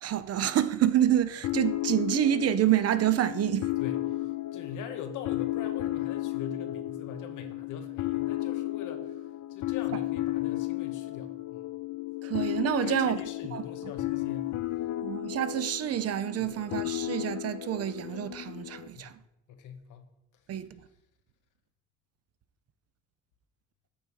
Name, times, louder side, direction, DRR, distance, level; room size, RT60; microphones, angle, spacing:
voice 1, 0.0-3.7 12.2-13.2 13.5-13.6 15.0-19.1 20.5-20.8, right 11 dB, 55° right, 0.5 m, -27 dB
sound 1, 1.4-18.9, left 15 dB, 65° left, 0.6 m, -33 dB
voice 2, 3.8-11.7 12.8-14.5 16.4-16.5 18.9-19.1 19.5-20.1, left 6 dB, 85° left, 0.9 m, -43 dB
8.7 x 3.2 x 5.3 m
cardioid pair, 90°, 30 cm